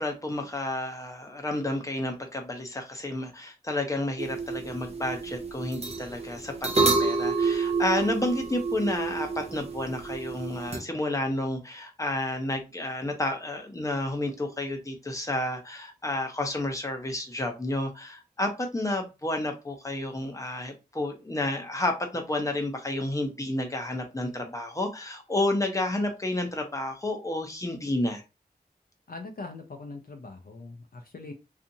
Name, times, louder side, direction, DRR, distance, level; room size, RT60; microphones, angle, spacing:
voice 1, 0.0-28.2, left 1 dB, 20° left, 0.6 m, -31 dB
sound 1, 4.2-10.8, right 4 dB, 35° right, 0.5 m, -29 dB
voice 2, 29.1-31.3, left 3 dB, 60° left, 0.5 m, -41 dB
2.6 x 2.4 x 2.6 m
wide cardioid pair, 75°, 17 cm